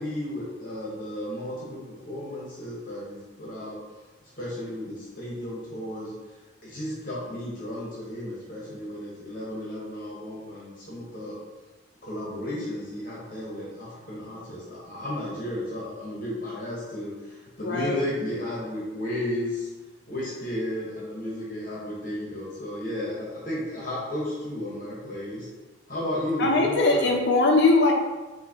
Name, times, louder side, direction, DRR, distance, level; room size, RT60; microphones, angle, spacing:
voice 1, 0.0-3.8 4.4-6.1 6.6-11.4 12.0-19.7 20.1-25.4 25.9-27.1, left 1 dB, 45° left, -6 dB, 1.2 m, -33 dB
voice 2, 17.6-18.1 26.4-27.9, left 2 dB, 60° left, 1 dB, 0.7 m, -21 dB
5.5 x 2.9 x 2.8 m, 1.2 s
head